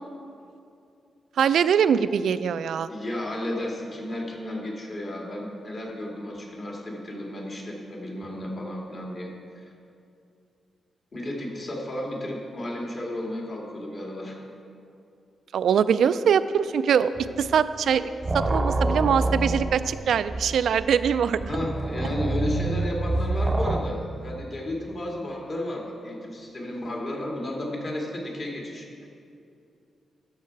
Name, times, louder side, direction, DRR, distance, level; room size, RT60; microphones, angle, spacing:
voice 1, 1.4-2.9 15.5-17.1 17.4-21.4, right 7 dB, 80° right, 13 dB, 0.3 m, -22 dB
voice 2, 2.9-9.3 11.1-14.4 21.5-29.1, left 1 dB, 45° left, -1 dB, 1.9 m, -33 dB
sound 1, 17.2-17.6 17.9-23.8, right 2 dB, 25° right, 0.6 m, -27 dB
12.5 x 6.6 x 4.6 m, 2.5 s
wide cardioid pair, 120°, 0 cm